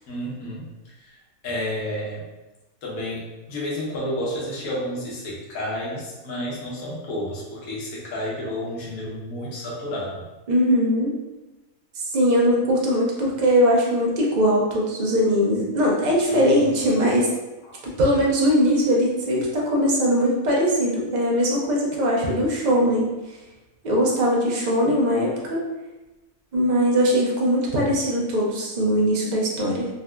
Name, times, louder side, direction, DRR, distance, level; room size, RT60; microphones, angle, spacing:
voice 1, 0.1-1.2 1.4-2.3 2.8-10.2 16.3-16.7 17.6-17.8, left 1 dB, 65° left, -5 dB, 1.3 m, -31 dB
voice 2, 10.5-11.1 12.0-17.3 18.0-23.1 23.8-25.6 26.5-29.9, equal, 50° right, -3 dB, 0.5 m, -20 dB
3.7 x 2.6 x 2.2 m, 1.1 s
omnidirectional pair, 1.6 m